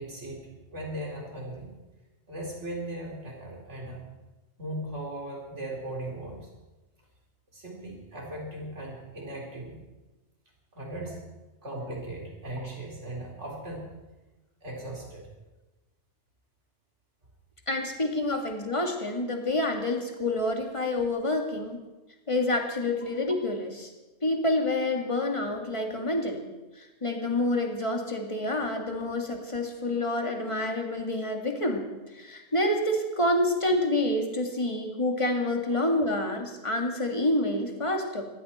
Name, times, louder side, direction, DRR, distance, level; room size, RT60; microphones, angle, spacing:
voice 1, 0.0-1.7 2.3-4.1 4.6-6.5 7.5-9.8 10.7-11.2 11.6-13.9 14.6-15.3, right 1 dB, 80° right, -1 dB, 4.1 m, -38 dB
voice 2, 17.7-21.8 22.3-23.9 24.2-26.5 26.8-31.9 32.1-38.3, left 1 dB, 25° left, 2 dB, 2.1 m, -28 dB
20.5 x 15.5 x 4.3 m, 1.1 s
omnidirectional pair, 1.2 m